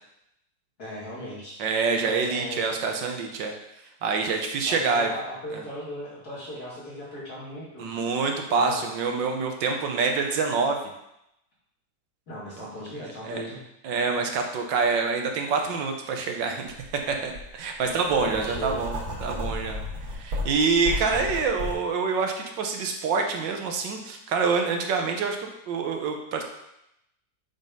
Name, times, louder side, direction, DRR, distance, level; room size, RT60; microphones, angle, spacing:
voice 1, 0.8-1.6 2.0-2.8 4.7-7.9 8.5-8.8 12.3-13.6 17.8-18.8, left 1 dB, 55° left, -8 dB, 3.4 m, -37 dB
voice 2, 1.6-3.5 4.0-5.1 5.5-5.6 7.8-10.8 12.6-12.7 13.0-13.4 13.8-16.7 17.1-19.8 20.1-26.4, right 4 dB, 85° right, 3 dB, 1.6 m, -26 dB
Writing, 16.7-16.9 17.3-21.7, left 1 dB, 65° right, 2.1 m, -33 dB
7.4 x 3.9 x 5.3 m, 0.83 s
omnidirectional pair, 1.9 m